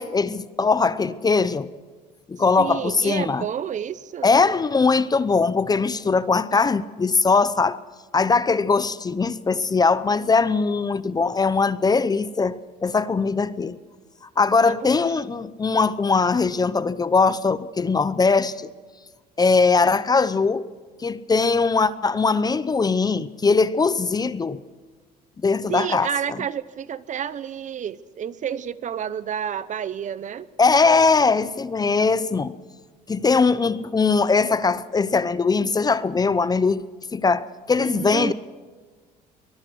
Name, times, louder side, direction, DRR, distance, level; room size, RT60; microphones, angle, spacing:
voice 1, 0.0-1.7 2.3-3.5 4.2-7.8 8.1-13.8 14.4-18.7 19.4-20.7 21.0-24.6 25.4-26.1 30.6-32.6 33.1-36.8 37.1-38.3, left 4 dB, 25° left, 0.8 m, -20 dB
voice 2, 2.6-4.3 14.6-14.9 25.7-30.5 37.8-38.3, right 8 dB, 45° right, 0.9 m, -30 dB
24.5 x 19.5 x 6.3 m
cardioid pair, 110°, 17 cm